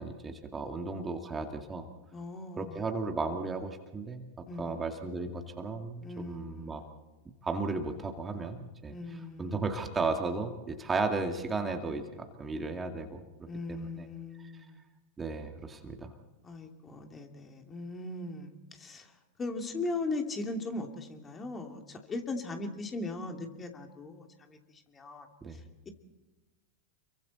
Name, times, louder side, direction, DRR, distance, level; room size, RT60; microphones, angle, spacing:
voice 1, 0.0-1.9 2.6-4.3 4.6-6.8 7.4-9.0 9.4-14.1 14.4-14.5 15.2-16.1 25.4-25.6, right 3 dB, 15° right, 4 dB, 2.2 m, -35 dB
voice 2, 2.1-2.9 4.5-4.9 6.0-6.9 8.9-9.6 13.5-14.8 16.4-19.1 19.4-25.3 25.5-25.6, left 2 dB, 20° left, 4 dB, 2.7 m, -39 dB
29.0 x 23.5 x 4.2 m, 1.2 s
figure-of-eight pair, 95°, 0 cm